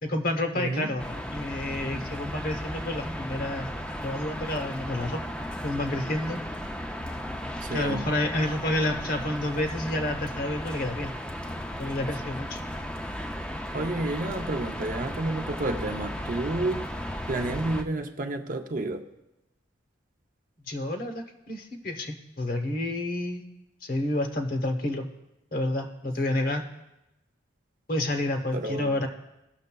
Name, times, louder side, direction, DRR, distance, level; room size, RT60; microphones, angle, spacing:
voice 1, 0.0-3.7 4.0-5.2 5.6-6.4 7.7-11.1 11.8-12.6 20.7-23.4 23.8-25.1 25.5-26.6 27.9-29.1, left 1 dB, 50° left, 0.9 m, -29 dB
voice 2, 0.5-0.9 7.6-8.2 13.7-16.9 17.3-19.1 28.5-28.9, right 2 dB, 45° right, 0.5 m, -30 dB
sound 1, 1.0-17.8, equal, 5° left, 0.4 m, -35 dB
18.0 x 6.4 x 2.2 m
head